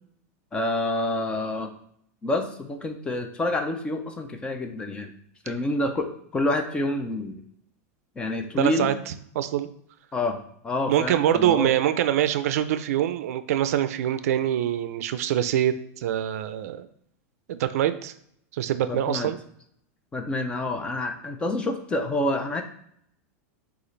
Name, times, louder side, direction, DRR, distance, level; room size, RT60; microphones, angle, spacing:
voice 1, 0.5-1.7 2.2-5.1 5.4-7.4 8.2-8.9 10.1-10.4 10.6-11.7 18.8-19.3 20.1-22.6, left 2 dB, 10° left, 5 dB, 0.4 m, -28 dB
voice 2, 8.6-8.9 9.4-9.7 10.9-16.9 17.5-18.1 18.5-19.4, right 11 dB, 75° right, 12 dB, 0.4 m, -24 dB
6.5 x 2.4 x 3.1 m, 0.69 s
supercardioid pair, 155°, 8 cm